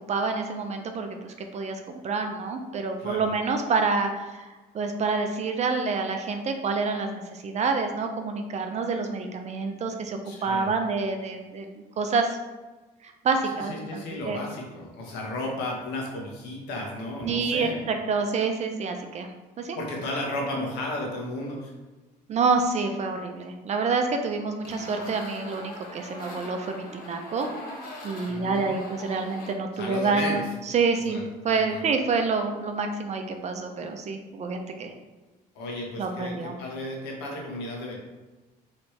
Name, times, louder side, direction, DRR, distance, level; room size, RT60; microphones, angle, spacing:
voice 1, 0.1-4.4 4.7-12.4 13.2-14.4 17.2-19.3 19.6-19.8 22.3-27.5 28.0-30.4 30.7-34.9 36.0-36.6, right 4 dB, 40° right, 5 dB, 0.6 m, -27 dB
voice 2, 3.0-3.3 10.2-10.7 13.4-17.9 19.7-21.7 28.3-28.7 29.7-30.5 31.1-31.8 35.5-38.0, left 1 dB, 85° left, -1 dB, 1.2 m, -34 dB
sound 1, 24.6-29.5, left 1 dB, 55° left, 1.1 m, -42 dB
4.3 x 3.2 x 3.2 m, 1.2 s
cardioid pair, 110°, 17 cm